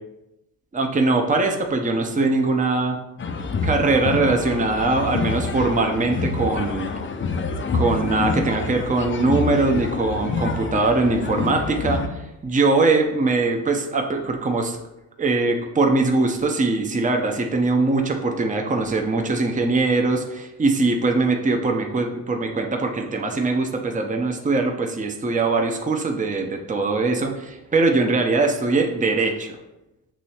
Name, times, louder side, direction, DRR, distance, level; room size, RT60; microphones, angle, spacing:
voice 1, 0.7-3.0 3.6-6.9 7.7-14.8 15.2-29.5, right 3 dB, 20° right, 4 dB, 0.7 m, -21 dB
sound 1, 3.2-12.1, left 4 dB, 30° left, 0.5 m, -27 dB
6.1 x 3.0 x 2.9 m, 0.93 s
hypercardioid pair, 50°, 41 cm